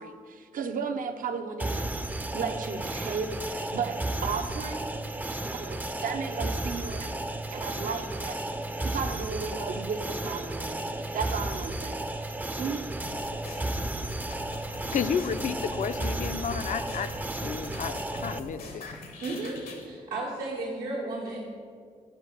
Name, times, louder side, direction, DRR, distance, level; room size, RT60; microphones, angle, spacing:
voice 1, 0.0-4.9 5.5-7.1 7.5-8.4 8.8-12.8, right 5 dB, 65° right, 6 dB, 0.6 m, -35 dB
sound 1, 1.6-18.4, right 1 dB, 10° right, 0.4 m, -33 dB
sound 2, 13.0-19.9, left 3 dB, 75° left, 1.0 m, -44 dB
voice 2, 14.9-17.1 17.4-18.8, left 7 dB, 60° left, 10 dB, 0.4 m, -31 dB
voice 3, 19.2-21.4, right 2 dB, 90° right, -5 dB, 1.4 m, -34 dB
5.9 x 4.5 x 6.5 m, 2.1 s
supercardioid pair, 45°, 15 cm